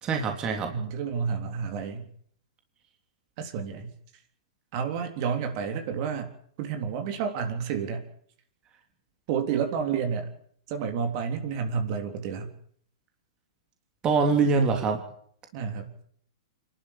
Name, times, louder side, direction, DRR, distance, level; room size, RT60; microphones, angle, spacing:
voice 1, 0.0-0.7 14.0-15.0, right 4 dB, 25° right, 4 dB, 3.4 m, -24 dB
voice 2, 0.7-2.1 3.4-3.9 4.7-6.3 6.6-8.1 9.3-10.3 10.7-12.5 15.5-15.9, right 6 dB, 45° right, 5 dB, 3.6 m, -30 dB
26.0 x 12.0 x 9.1 m, 0.64 s
hypercardioid pair, 120°, 3 cm